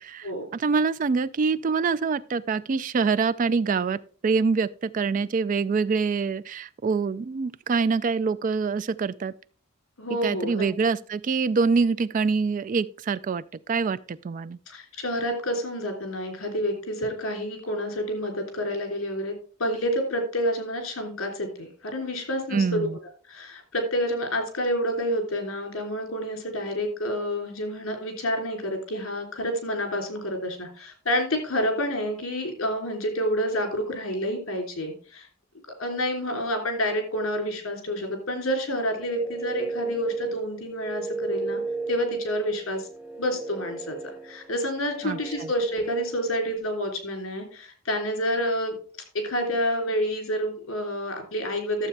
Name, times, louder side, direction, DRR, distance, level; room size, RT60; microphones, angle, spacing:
voice 1, 0.0-9.3 10.2-13.4 13.7-14.6 22.5-23.0 45.0-45.5, right 4 dB, 40° right, 0.3 m, -25 dB
voice 2, 10.0-10.7 14.7-19.3 19.6-22.9 23.3-35.3 35.8-41.6 41.9-42.9 43.2-44.0 44.2-48.7 49.1-51.9, equal, 70° left, 3.3 m, -28 dB
sound 1, 38.7-46.6, right 3 dB, 5° right, 0.7 m, -35 dB
12.0 x 7.4 x 3.3 m
head